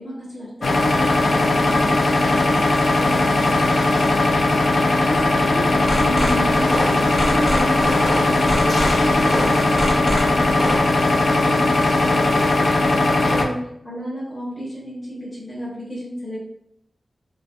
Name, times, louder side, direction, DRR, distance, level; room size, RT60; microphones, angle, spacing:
voice 1, 0.0-4.4 4.8-10.8 11.1-12.6 13.3-16.4, equal, 20° left, -9 dB, 1.1 m, -32 dB
sound 1, 0.6-13.5, left 2 dB, 75° left, 0.3 m, -18 dB
sound 2, 5.8-10.8, left 1 dB, 55° left, 1.4 m, -25 dB
3.4 x 2.4 x 2.3 m, 0.76 s
wide cardioid pair, 85°, 0 cm